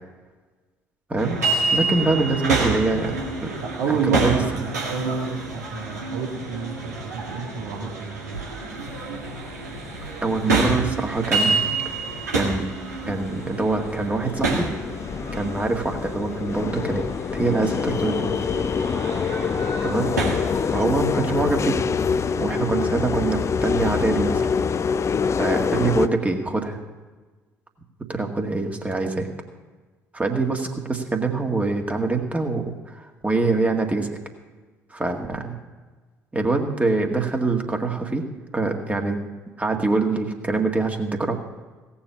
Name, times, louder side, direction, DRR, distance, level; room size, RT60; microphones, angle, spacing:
sound 1, 1.2-20.8, right 3 dB, 80° right, 1.8 m, -28 dB
voice 1, 1.7-3.5 3.9-4.4 10.2-11.9 12.3-12.6 13.1-14.7 15.3-17.0 17.3-18.3 19.8-20.1 20.7-21.8 22.3-24.5 25.4-26.8 28.1-29.3 30.1-34.1 34.9-35.6 36.3-38.3 38.5-39.2 39.6-41.3, right 3 dB, 15° right, 3 dB, 1.9 m, -24 dB
voice 2, 3.6-8.4, right 5 dB, 65° right, -3 dB, 1.6 m, -29 dB
sound 2, 8.8-26.1, left 6 dB, 35° left, 0.6 m, -26 dB
17.0 x 7.2 x 7.0 m, 1.3 s
figure-of-eight pair, 50°, 9 cm